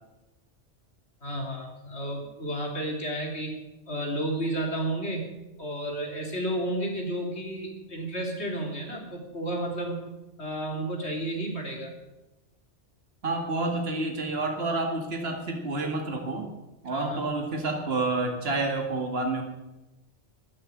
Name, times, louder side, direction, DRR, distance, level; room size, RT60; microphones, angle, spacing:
voice 1, 1.2-3.5 3.9-5.3 5.6-10.0 10.4-11.9 16.9-17.2, right 1 dB, 65° left, 1 dB, 3.4 m, -32 dB
voice 2, 13.2-16.5 16.8-19.4, right 2 dB, 55° right, 2 dB, 2.2 m, -29 dB
13.0 x 10.5 x 8.7 m, 1.0 s
omnidirectional pair, 1.2 m